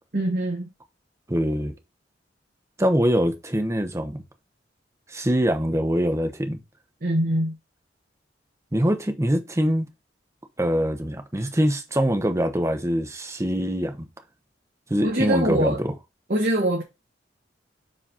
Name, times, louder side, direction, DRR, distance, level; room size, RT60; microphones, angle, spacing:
voice 1, 0.1-0.7 7.0-7.6 15.0-15.8 16.3-16.8, right 1 dB, 50° right, 1.3 m, -23 dB
voice 2, 1.3-1.7 2.8-4.2 5.1-6.6 8.7-9.9 10.6-14.1 14.9-15.9, equal, 15° right, 0.9 m, -23 dB
5.1 x 4.1 x 5.5 m
head